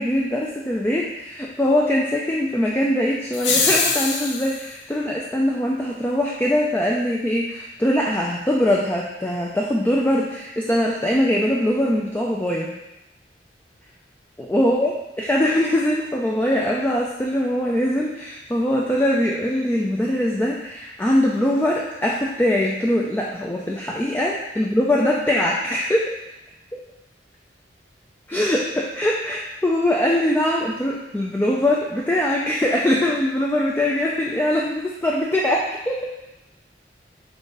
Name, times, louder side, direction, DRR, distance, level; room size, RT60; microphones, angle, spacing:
voice 1, 0.0-12.7 14.4-26.0 28.3-36.1, left 1 dB, 10° left, -3 dB, 0.4 m, -22 dB
sound 1, 3.3-4.7, left 4 dB, 80° left, 0.6 m, -22 dB
3.8 x 3.6 x 3.9 m, 0.93 s
head